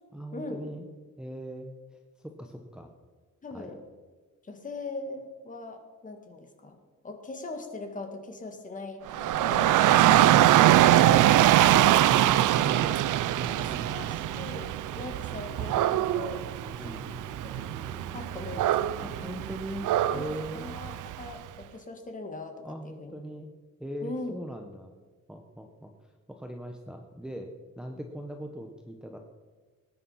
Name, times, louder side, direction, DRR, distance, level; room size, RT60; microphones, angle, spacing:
voice 1, 0.1-0.9 1.2-2.9 3.5-3.7 11.8-13.0 13.3-14.4 16.8-17.0 19.0-19.9 20.1-20.9 22.6-23.5 23.8-25.0 25.3-29.2, equal, 5° right, 2 dB, 0.9 m, -40 dB
voice 2, 3.4-3.8 4.4-6.8 7.0-9.8 10.1-12.1 13.5-16.5 16.8-16.9 17.5-17.6 18.1-19.3 20.0-23.1 24.0-24.3, left 3 dB, 25° left, 5 dB, 1.7 m, -40 dB
Dog / Rain, 9.1-21.3, right 13 dB, 80° right, 0.5 m, -23 dB
sound 1, 9.7-19.6, right 1 dB, 25° right, 3.4 m, -47 dB
20.0 x 9.9 x 5.6 m, 1.4 s
wide cardioid pair, 180°, 30 cm